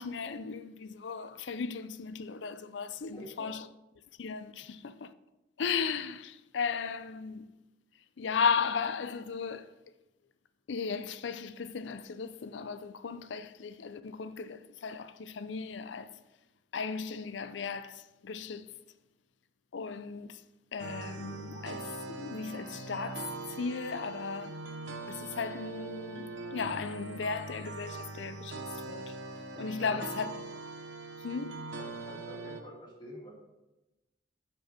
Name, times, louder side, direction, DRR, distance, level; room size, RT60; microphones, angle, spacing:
voice 1, 0.0-3.7 4.2-5.1 5.6-7.5 8.2-9.7 10.7-16.2 16.7-18.7 19.7-20.4 20.7-24.6 25.1-29.2 29.6-30.4 31.2-31.6, left 5 dB, 80° left, 0.5 m, -36 dB
voice 2, 3.1-3.5 29.8-30.0 31.8-33.3, equal, 25° left, 2.4 m, -48 dB
sound 1, 20.8-32.6, right 3 dB, 80° right, 0.9 m, -42 dB
7.7 x 4.6 x 6.6 m
head